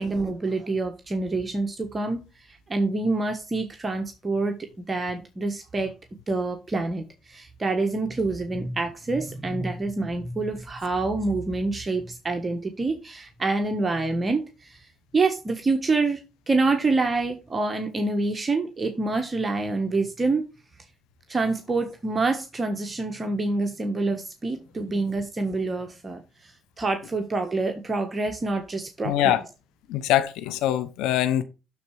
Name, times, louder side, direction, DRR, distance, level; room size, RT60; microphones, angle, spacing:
voice 1, 0.0-5.9 6.3-14.9 15.1-20.4 21.3-29.4, right 3 dB, 30° right, 1.4 m, -27 dB
voice 2, 29.0-29.4 29.9-31.4, left 12 dB, 90° left, 0.9 m, -23 dB
12.0 x 4.2 x 4.9 m
supercardioid pair, 70°, 0 cm